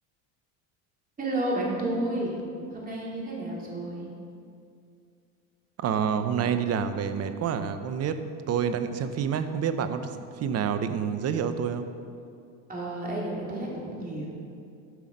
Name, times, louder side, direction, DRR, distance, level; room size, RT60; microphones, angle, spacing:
voice 1, 1.2-2.4 2.7-4.1 12.7-14.3, right 1 dB, 20° right, -4 dB, 2.8 m, -31 dB
voice 2, 5.8-11.9, right 7 dB, 35° right, 10 dB, 0.8 m, -28 dB
13.0 x 5.8 x 5.2 m, 2.5 s
supercardioid pair, 95°, 41 cm